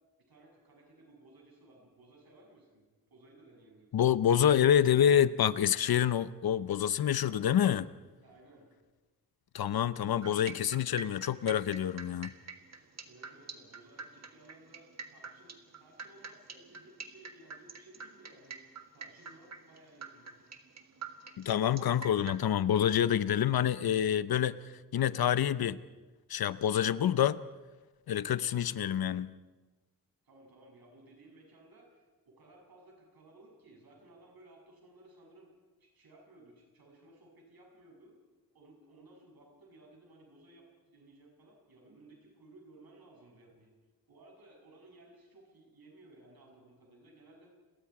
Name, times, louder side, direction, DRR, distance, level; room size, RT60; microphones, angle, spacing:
voice 1, 0.3-3.9 8.2-8.7 13.0-18.6 18.9-20.4 30.2-35.5 35.8-38.1 38.5-43.7 44.1-47.5, right 2 dB, 85° right, 8.0 m, -58 dB
voice 2, 3.9-7.9 9.5-12.3 21.4-24.6 24.9-25.8 26.3-27.4 28.1-29.3, left 9 dB, 85° left, 0.8 m, -27 dB
sound 1, 10.2-22.4, right 4 dB, 45° right, 1.7 m, -46 dB
30.0 x 22.5 x 4.8 m
wide cardioid pair, 170°, 36 cm